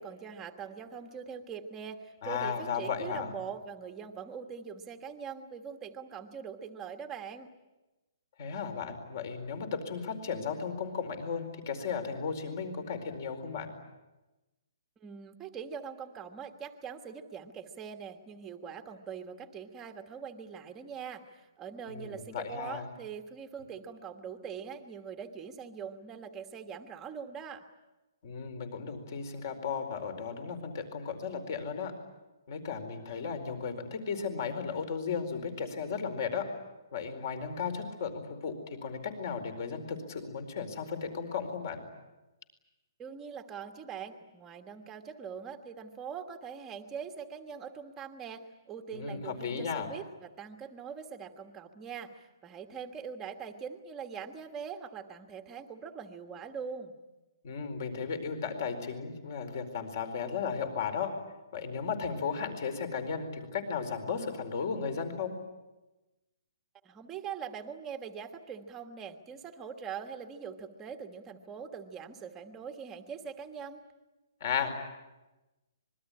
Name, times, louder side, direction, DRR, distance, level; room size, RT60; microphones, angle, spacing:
voice 1, 0.0-7.5 15.0-21.2 21.6-27.6 43.0-56.9 66.8-73.8, right 7 dB, 10° right, 5 dB, 1.4 m, -42 dB
voice 2, 2.2-3.3 8.4-13.7 21.9-22.9 28.2-31.9 32.5-36.4 36.9-41.8 48.9-49.9 57.4-61.1 61.5-65.3 74.4-74.7, left 6 dB, 45° left, 8 dB, 4.5 m, -35 dB
26.0 x 22.0 x 10.0 m, 1.1 s
hypercardioid pair, 170°, 2 cm